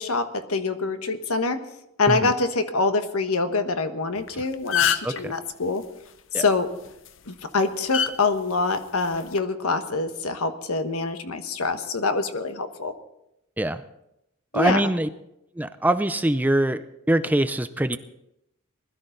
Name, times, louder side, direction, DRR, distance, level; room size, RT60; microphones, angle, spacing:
voice 1, 0.0-1.6 2.0-5.8 6.3-6.7 7.3-12.9 14.5-14.8, left 3 dB, 85° left, 8 dB, 1.2 m, -25 dB
sound 1, 4.2-4.3 4.5-5.2 6.8-7.1 7.9-8.1 9.1-9.4, left 9 dB, 60° left, 0.7 m, -23 dB
voice 2, 14.5-15.1 15.6-18.0, right 1 dB, 10° right, 11 dB, 0.4 m, -23 dB
20.5 x 12.5 x 3.9 m, 0.84 s
head